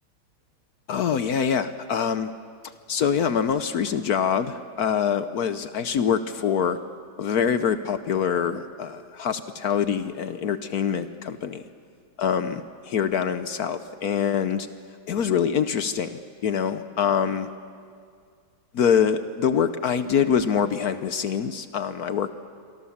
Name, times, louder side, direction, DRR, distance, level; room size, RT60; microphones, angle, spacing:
voice 1, 0.9-2.3 2.9-6.8 7.2-11.6 12.2-14.7 15.1-17.5 18.7-22.4, left 7 dB, 60° left, 11 dB, 1.1 m, -25 dB
27.0 x 24.0 x 7.2 m, 2.2 s
omnidirectional pair, 2.2 m